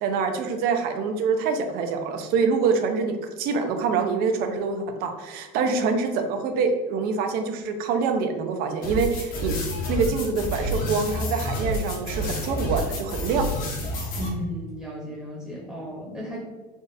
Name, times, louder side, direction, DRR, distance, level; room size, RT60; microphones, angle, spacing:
voice 1, 0.0-9.6 9.9-13.5, right 5 dB, 60° right, 6 dB, 0.6 m, -25 dB
sound 1, 8.8-14.3, left 1 dB, 55° left, 1.0 m, -29 dB
voice 2, 14.1-16.4, equal, 5° right, -4 dB, 0.9 m, -34 dB
3.6 x 2.5 x 4.0 m, 1.2 s
cardioid pair, 140°, 18 cm